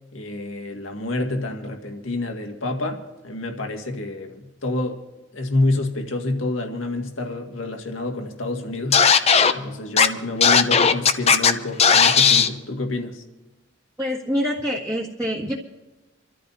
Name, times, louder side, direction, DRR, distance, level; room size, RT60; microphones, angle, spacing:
voice 1, 0.1-5.0 5.3-9.0 9.5-13.2, left 2 dB, 80° left, 2.0 m, -28 dB
Scratching (performance technique), 8.9-9.5 10.0-10.1 10.4-11.5 11.8-12.5, left 6 dB, 30° left, 0.7 m, -15 dB
voice 2, 14.0-15.5, equal, 15° right, 1.7 m, -25 dB
28.0 x 13.5 x 2.7 m
head